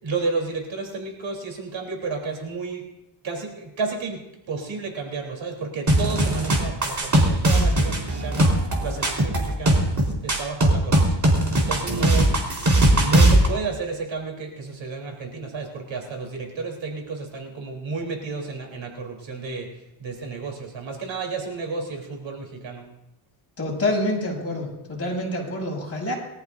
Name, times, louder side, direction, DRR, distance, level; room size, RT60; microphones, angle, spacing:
voice 1, 0.0-2.9 3.2-9.9 10.2-11.2 11.5-12.3 12.7-19.7 20.0-22.9, right 4 dB, 65° right, 1 dB, 3.7 m, -32 dB
sound 1, 5.9-13.5, right 1 dB, 35° right, 4.0 m, -19 dB
voice 2, 23.6-26.2, left 1 dB, 30° left, -3 dB, 7.0 m, -27 dB
23.0 x 14.0 x 2.6 m, 0.88 s
cardioid pair, 90°, 50 cm